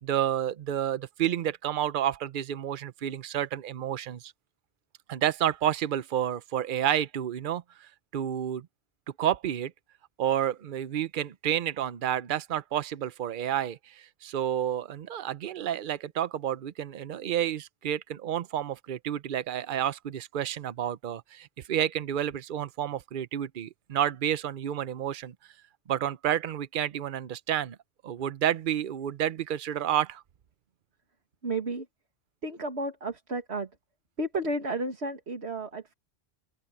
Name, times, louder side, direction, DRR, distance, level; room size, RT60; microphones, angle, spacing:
voice 1, 0.0-4.3 5.1-8.7 9.2-9.7 10.2-25.3 25.9-27.8 28.0-30.2, right 10 dB, 55° right, 0.8 m, -30 dB
voice 2, 31.4-31.9 32.4-33.7 34.2-35.9, right 2 dB, 90° right, 2.4 m, -32 dB
open air
omnidirectional pair, 1.1 m